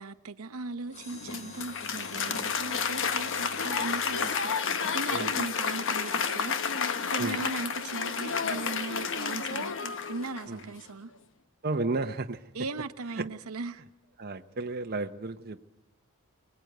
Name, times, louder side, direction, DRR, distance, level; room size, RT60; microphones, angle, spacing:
voice 1, 0.0-11.1 12.5-13.8, right 3 dB, 75° right, 0.9 m, -38 dB
Mechanisms, 0.9-5.8 6.4-6.7 7.3-7.6 8.0-8.1, left 2 dB, 30° left, 3.1 m, -49 dB
Applause, 1.0-10.6, left 6 dB, 60° left, 1.2 m, -31 dB
voice 2, 11.6-12.5 13.2-13.3 14.2-15.6, right 3 dB, 45° right, 0.9 m, -33 dB
25.0 x 19.5 x 9.3 m
head